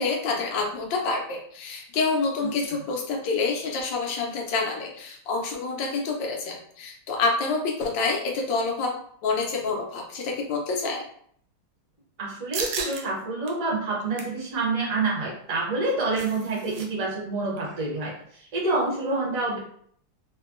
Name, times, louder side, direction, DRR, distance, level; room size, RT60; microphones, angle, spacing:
voice 1, 0.0-8.9 9.2-11.0, left 4 dB, 75° left, 0 dB, 1.3 m, -27 dB
voice 2, 12.2-18.1 18.5-19.6, right 3 dB, 50° right, -4 dB, 1.2 m, -27 dB
sound 1, 12.5-13.0 13.5-13.6 14.0-14.4 15.7-16.9 17.1-17.2 17.6-17.9, right 5 dB, 85° right, 1.4 m, -34 dB
3.5 x 2.2 x 2.4 m, 0.63 s
omnidirectional pair, 2.1 m